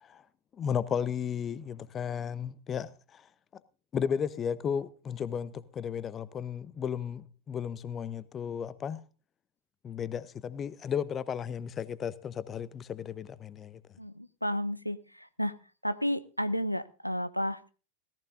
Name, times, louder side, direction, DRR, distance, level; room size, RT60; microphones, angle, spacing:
voice 1, 0.5-3.2 3.9-9.0 9.8-13.8, left 7 dB, 25° left, 0.7 m, -34 dB
voice 2, 14.0-15.5 15.8-17.7, equal, 90° left, 0.5 m, -32 dB
17.0 x 15.0 x 2.6 m
figure-of-eight pair, 90°, 0 cm